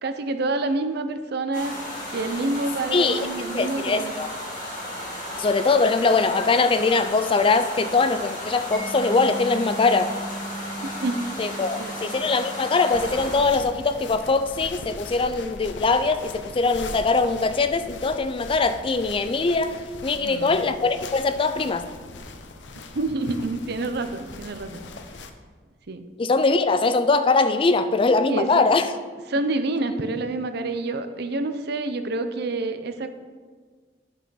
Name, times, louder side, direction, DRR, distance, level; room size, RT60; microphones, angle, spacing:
voice 1, 0.0-1.8 2.1-4.1 11.0-11.9 20.1-20.6 22.9-24.8 25.9-26.0 28.3-28.7 29.3-33.1, right 2 dB, 65° right, 9 dB, 0.6 m, -28 dB
sound 1, 1.5-13.4, left 1 dB, 45° left, 2.3 m, -34 dB
voice 2, 2.9-3.3 3.5-4.3 5.4-10.1 11.4-19.8 20.0-21.9 26.2-28.9, left 3 dB, 30° left, 10 dB, 0.4 m, -22 dB
Mallet percussion, 8.7-15.5, right 2 dB, 5° left, 1.6 m, -39 dB
sound 2, 12.9-25.3, left 3 dB, 80° left, 0.7 m, -40 dB
10.0 x 5.7 x 4.0 m, 1.5 s
head